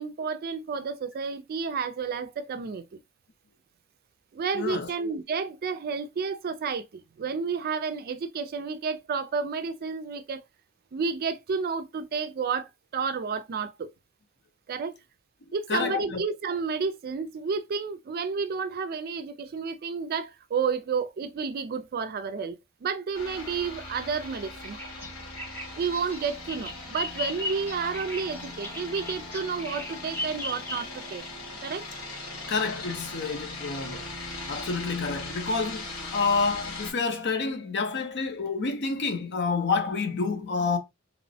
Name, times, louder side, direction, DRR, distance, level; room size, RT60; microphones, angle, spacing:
voice 1, 0.0-2.8 4.3-10.4 10.9-13.9 14.7-14.9 15.5-22.6 22.8-24.8 25.8-31.3 31.6-31.9, right 5 dB, 45° right, 0.4 m, -31 dB
voice 2, 4.5-4.9 15.7-16.3 32.5-34.1 34.5-40.8, left 4 dB, 55° left, 0.6 m, -28 dB
sound 1, 23.1-36.9, left 2 dB, 85° left, 1.5 m, -39 dB
Bird vocalization bird call bird song, 24.6-31.2, left 1 dB, 10° left, 0.6 m, -36 dB
2.9 x 2.1 x 2.6 m
head